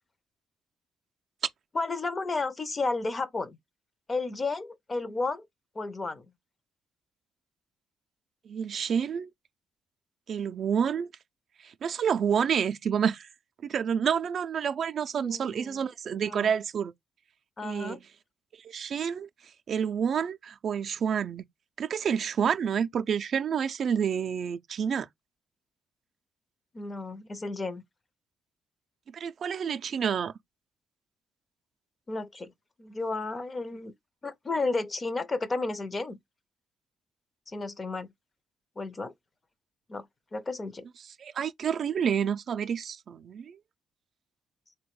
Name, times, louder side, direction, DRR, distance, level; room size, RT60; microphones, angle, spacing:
voice 1, 1.7-3.6 4.1-5.4 5.8-6.3 15.2-15.8 16.3-16.5 17.6-18.0 26.7-27.8 32.1-32.5 32.8-33.9 34.2-36.2 37.5-38.1 38.8-39.1 39.9-40.1 40.3-40.9, left 3 dB, 30° left, 0.5 m, -32 dB
voice 2, 8.5-9.3 10.3-11.1 11.6-13.3 13.6-16.9 17.6-18.0 18.6-19.3 19.7-21.4 21.8-25.1 29.1-30.3 41.2-43.6, right 7 dB, 55° right, 0.3 m, -29 dB
3.5 x 2.1 x 3.1 m
cardioid pair, 90°, 0 cm